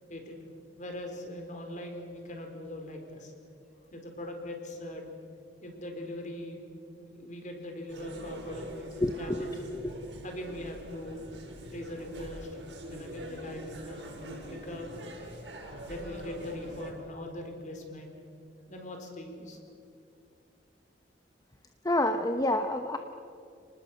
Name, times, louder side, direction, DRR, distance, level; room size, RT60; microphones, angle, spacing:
voice 1, 0.1-0.5 0.8-3.3 3.9-5.1 5.6-6.6 7.0-9.5 10.2-11.2 11.7-12.6 12.9-14.9 15.8-18.2 18.7-19.6, left 1 dB, 45° left, 3 dB, 4.3 m, -41 dB
sound 1, 7.9-16.9, right 1 dB, 75° right, 8.0 m, -44 dB
voice 2, 9.0-9.4 9.7-10.0 21.8-23.0, left 1 dB, 20° left, 6 dB, 1.0 m, -28 dB
30.0 x 19.5 x 7.7 m, 2.5 s
head